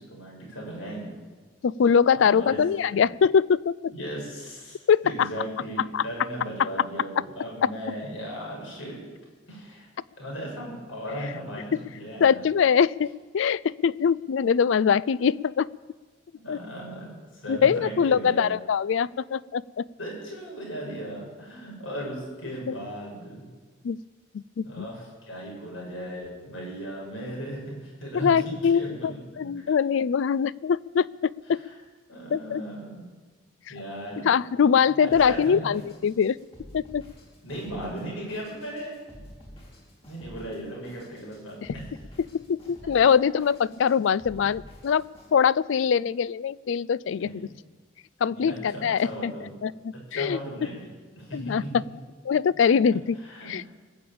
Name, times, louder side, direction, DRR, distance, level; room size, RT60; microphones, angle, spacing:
voice 1, 0.1-1.1 2.2-2.6 2.9-3.1 3.9-9.0 9.5-9.9 10.2-12.5 16.3-18.5 20.0-23.5 24.6-29.5 31.5-31.8 32.1-33.0 33.7-34.3 34.9-35.8 37.4-39.0 40.1-41.9 47.2-47.5 48.3-48.6 49.0-49.5 49.9-51.7 53.2-53.6, equal, 90° left, -2 dB, 6.4 m, -37 dB
voice 2, 1.6-3.9 4.9-5.3 5.9-6.0 7.6-7.7 12.2-15.7 16.5-16.6 17.5-19.9 22.7-22.8 23.8-24.0 24.6-24.9 28.1-31.6 32.3-32.6 34.2-36.4 36.7-37.0 42.3-45.0 45.3-47.5 48.2-49.3 49.6-49.7 50.1-50.4 51.3-51.6 52.3-53.2 53.5-53.7, left 7 dB, 70° left, 21 dB, 0.4 m, -23 dB
Drum kit, 35.1-45.3, equal, 30° left, 3.5 m, -49 dB
20.5 x 7.0 x 8.7 m, 1.4 s
head